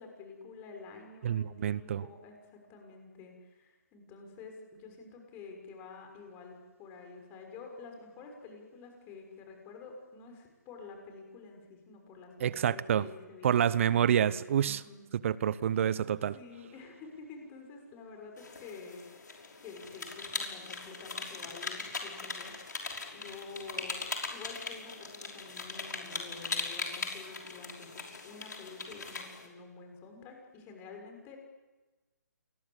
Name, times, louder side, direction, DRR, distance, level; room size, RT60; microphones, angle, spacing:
voice 1, 0.0-15.0 16.3-22.5 23.1-31.4, left 4 dB, 20° left, 3 dB, 6.3 m, -49 dB
voice 2, 1.2-2.0 12.4-13.1 13.4-14.8 15.1-16.4, right 9 dB, 45° right, 19 dB, 0.9 m, -28 dB
sound 1, 18.4-29.5, left 4 dB, 75° left, 5.6 m, -40 dB
28.5 x 22.0 x 8.3 m, 1.2 s
figure-of-eight pair, 145°, 10 cm